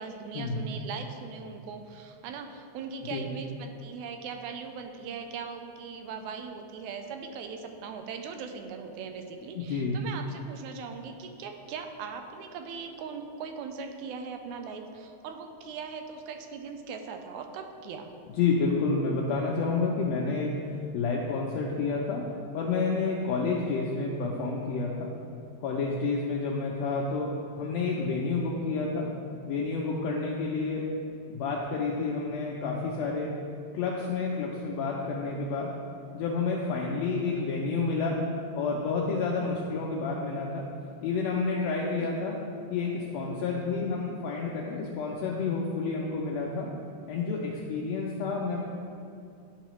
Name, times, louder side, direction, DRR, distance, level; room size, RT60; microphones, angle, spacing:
voice 1, 0.0-18.1 42.0-42.1, right 5 dB, 90° right, 5 dB, 2.0 m, -40 dB
voice 2, 9.5-10.0 18.4-20.5 20.9-22.2 22.5-25.1 25.6-27.3 27.6-29.1 29.4-30.9 31.3-33.3 33.7-35.7 36.1-38.2 38.5-40.6 41.0-42.3 42.7-46.7 47.1-48.6, left 4 dB, 75° left, -2 dB, 1.7 m, -29 dB
11.0 x 4.9 x 3.0 m, 2.4 s
omnidirectional pair, 3.3 m